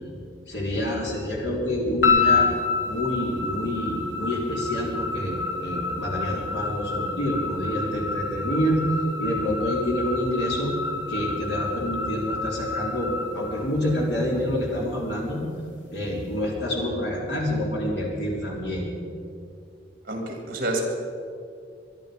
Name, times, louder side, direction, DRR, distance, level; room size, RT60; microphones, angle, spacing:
voice 1, 0.5-2.5 2.8-8.8 9.2-10.7 11.1-15.4 15.9-18.9, equal, 70° left, -3 dB, 4.1 m, -27 dB
sound 1, 2.0-14.3, left 4 dB, 85° left, 3.0 m, -28 dB
voice 2, 20.1-20.8, right 2 dB, 50° right, 2 dB, 3.0 m, -28 dB
23.0 x 11.0 x 5.3 m, 2.4 s
head